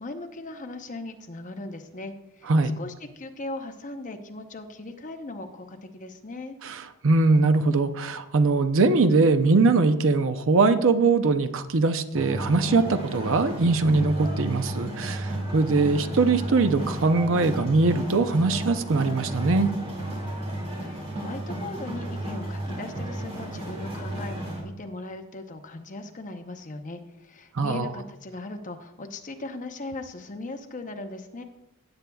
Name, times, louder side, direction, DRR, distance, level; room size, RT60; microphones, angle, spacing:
voice 1, 0.0-2.5 2.8-6.6 20.8-31.4, left 2 dB, 35° left, 6 dB, 0.8 m, -38 dB
voice 2, 6.6-19.7 27.5-27.9, right 3 dB, 60° right, 9 dB, 0.6 m, -22 dB
sound 1, 12.1-24.6, right 1 dB, 25° right, 2.3 m, -33 dB
16.5 x 8.2 x 2.3 m, 0.93 s
head